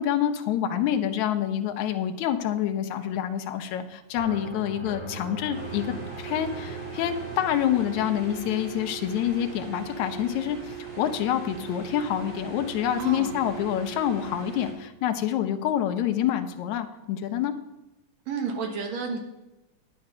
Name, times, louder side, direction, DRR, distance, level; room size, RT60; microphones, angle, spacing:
voice 1, 0.0-5.9 6.2-17.5, left 10 dB, 80° left, 6 dB, 2.2 m, -27 dB
sound 1, 4.2-10.9, right 4 dB, 5° right, 1.1 m, -42 dB
sound 2, 5.5-14.7, right 7 dB, 45° right, 3.4 m, -39 dB
voice 2, 13.0-13.4 18.3-19.2, right 5 dB, 70° right, 3 dB, 2.5 m, -31 dB
9.9 x 9.7 x 5.5 m, 0.97 s
omnidirectional pair, 3.3 m